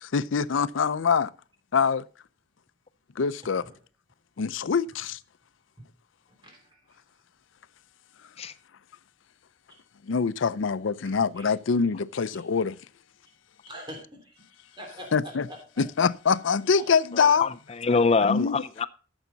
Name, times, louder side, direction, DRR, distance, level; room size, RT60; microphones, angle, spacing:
voice 1, 0.0-1.3 1.7-2.1 3.2-3.6 4.4-5.2 10.1-12.8 15.1-15.5 15.8-17.5 18.2-18.6, left 5 dB, 80° left, 0.5 m, -24 dB
voice 2, 6.3-7.0 11.0-11.5 12.3-12.4 13.7-14.4 14.7-15.8 16.7-16.9, equal, 25° right, 3.1 m, -45 dB
voice 3, 17.1-18.9, left 4 dB, 30° left, 0.4 m, -25 dB
14.0 x 7.1 x 3.9 m
head